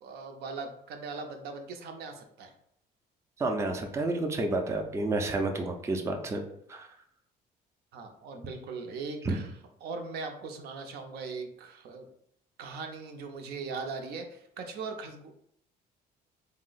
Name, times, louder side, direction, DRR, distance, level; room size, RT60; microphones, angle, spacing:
voice 1, 0.0-2.5 7.9-9.5 9.8-12.1 12.6-15.3, right 4 dB, 70° right, 5 dB, 0.5 m, -39 dB
voice 2, 3.4-6.4 6.7-6.9 9.2-9.4, right 2 dB, 15° right, 3 dB, 0.4 m, -30 dB
2.7 x 2.0 x 3.9 m, 0.70 s
cardioid pair, 110°, 17 cm